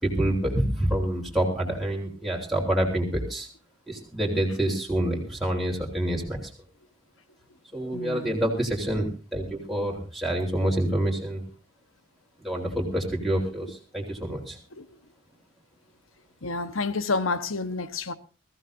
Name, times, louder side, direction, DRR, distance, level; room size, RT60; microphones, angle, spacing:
voice 1, 0.0-3.5 3.9-6.4 7.7-11.4 12.4-14.6, right 1 dB, ahead, 3.8 m, -27 dB
voice 2, 7.9-8.4 13.6-13.7 14.7-14.9 16.4-18.1, left 3 dB, 90° left, 1.3 m, -29 dB
22.0 x 15.5 x 2.7 m
head